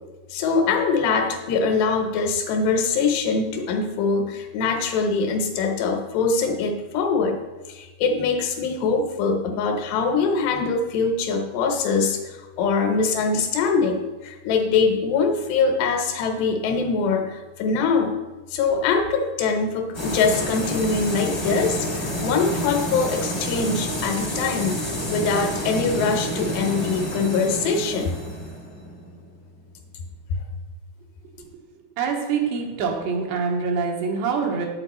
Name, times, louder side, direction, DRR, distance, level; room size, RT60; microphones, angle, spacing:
voice 1, 0.3-7.4 7.7-18.2 18.5-28.2 30.3-30.4, left 4 dB, 80° left, 4 dB, 3.0 m, -23 dB
sound 1, 19.9-29.6, equal, 60° left, 0.6 m, -29 dB
voice 2, 32.0-34.7, right 5 dB, 85° right, 1 dB, 3.5 m, -25 dB
9.1 x 8.0 x 4.2 m, 1.2 s
omnidirectional pair, 4.9 m